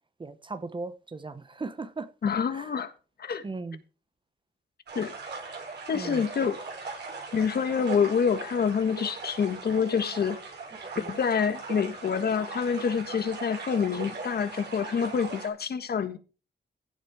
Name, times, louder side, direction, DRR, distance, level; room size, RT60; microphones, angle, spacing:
voice 1, 0.2-2.1 2.5-2.7 3.4-3.8 5.9-6.2 10.7-11.1, right 3 dB, 25° right, 0.9 m, -38 dB
voice 2, 2.2-2.9 3.2-3.4 4.9-5.1 5.9-6.6 7.3-10.4 11.0-16.2, left 6 dB, 60° left, 1.5 m, -27 dB
sound 1, 4.9-15.5, right 4 dB, 70° right, 7.3 m, -40 dB
16.0 x 7.6 x 4.9 m
wide cardioid pair, 145°, 18 cm